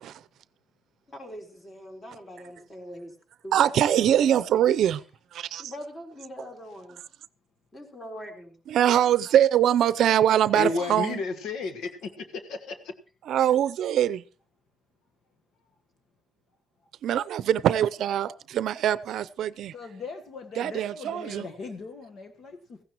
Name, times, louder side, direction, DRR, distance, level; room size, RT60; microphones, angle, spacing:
voice 1, 1.1-3.2 3.4-3.6 3.9-4.7 5.6-7.0 7.7-8.6, equal, 25° left, 3.9 m, -42 dB
voice 2, 3.5-5.0 5.3-5.7 8.7-11.2 13.3-14.2 17.0-19.7 20.6-21.5, right 10 dB, 65° right, 0.6 m, -23 dB
voice 3, 10.5-12.9, left 4 dB, 80° left, 1.4 m, -31 dB
voice 4, 19.7-22.8, left 4 dB, 50° left, 1.3 m, -41 dB
16.5 x 15.5 x 3.0 m
cardioid pair, 135°, 0 cm